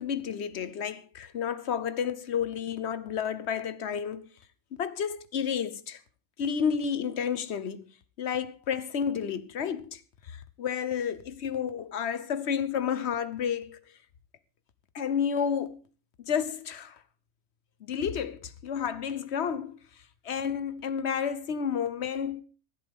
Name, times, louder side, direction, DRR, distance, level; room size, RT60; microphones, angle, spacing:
voice 1, 0.0-4.2 4.7-6.0 6.4-7.8 8.2-10.0 10.3-13.8 14.9-15.8 16.2-17.0 17.8-19.8 20.2-22.4, left 7 dB, 60° left, 1.2 m, -31 dB
24.5 x 8.4 x 3.6 m
omnidirectional pair, 1.3 m